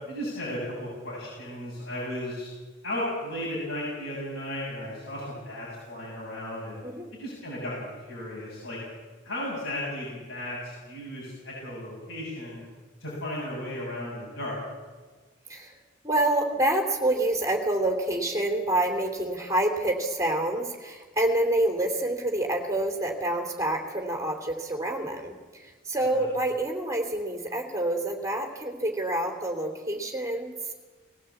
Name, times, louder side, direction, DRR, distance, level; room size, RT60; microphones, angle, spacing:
voice 1, 0.0-2.5 2.8-6.8 7.2-8.8 9.2-12.6 13.0-14.6 26.0-26.3, left 1 dB, 85° left, -6 dB, 7.3 m, -35 dB
voice 2, 16.0-30.7, right 1 dB, 15° right, 3 dB, 3.1 m, -27 dB
20.0 x 15.5 x 8.5 m, 1.4 s
head